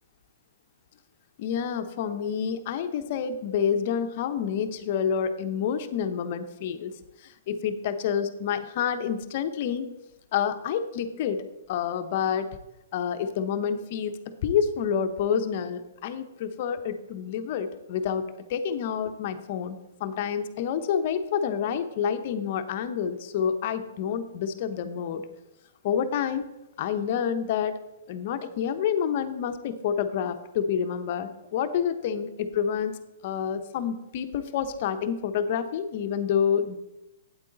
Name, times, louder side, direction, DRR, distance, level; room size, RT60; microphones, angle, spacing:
voice 1, 1.4-6.9 7.2-9.9 10.3-12.5 12.9-25.2 25.8-26.5 26.8-27.8 28.1-33.0 33.2-36.8, left 7 dB, 50° left, 9 dB, 0.9 m, -28 dB
8.8 x 8.3 x 4.0 m, 0.94 s
hypercardioid pair, 130°, 0 cm